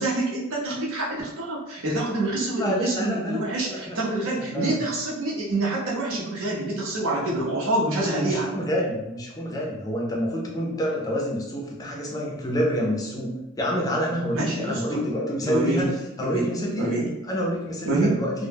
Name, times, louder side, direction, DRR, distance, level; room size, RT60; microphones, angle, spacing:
voice 1, 0.0-8.6 14.3-15.0 15.4-15.9 16.2-16.5 16.7-17.1 17.9-18.1, right 2 dB, 80° right, -4 dB, 0.7 m, -26 dB
voice 2, 2.6-4.0 4.2-4.8 7.9-15.9 16.2-16.9 17.3-18.3, equal, 15° left, -1 dB, 0.4 m, -28 dB
2.1 x 2.0 x 3.3 m, 0.97 s
head